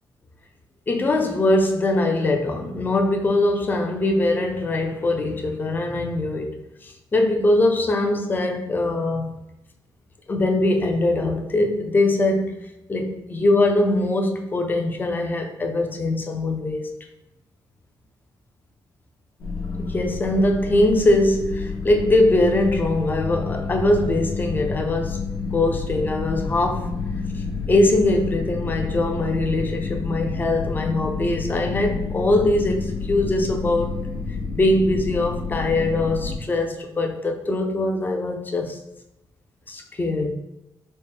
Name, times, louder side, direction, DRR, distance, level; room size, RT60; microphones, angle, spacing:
voice 1, 0.9-9.3 10.3-12.6 12.9-16.9 19.8-25.2 25.5-26.9 27.7-34.0 34.5-38.8 39.7-40.3, left 2 dB, 25° left, 0.5 m, -22 dB
sound 1, 19.4-36.4, left 4 dB, 60° left, 0.8 m, -29 dB
4.2 x 2.1 x 3.5 m
cardioid pair, 135°, 8 cm